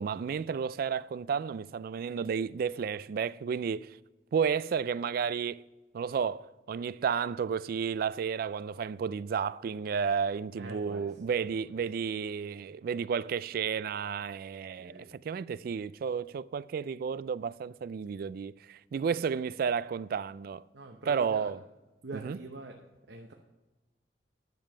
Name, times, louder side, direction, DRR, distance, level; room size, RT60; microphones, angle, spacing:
voice 1, 0.0-4.0 4.3-5.6 5.9-20.6 21.1-21.6 22.1-22.4, right 6 dB, 55° right, 0.3 m, -32 dB
voice 2, 10.6-11.1 11.4-11.5 14.8-15.1 20.7-21.5 22.0-22.7 23.1-23.3, right 2 dB, 70° right, 0.9 m, -44 dB
10.5 x 7.0 x 5.5 m
head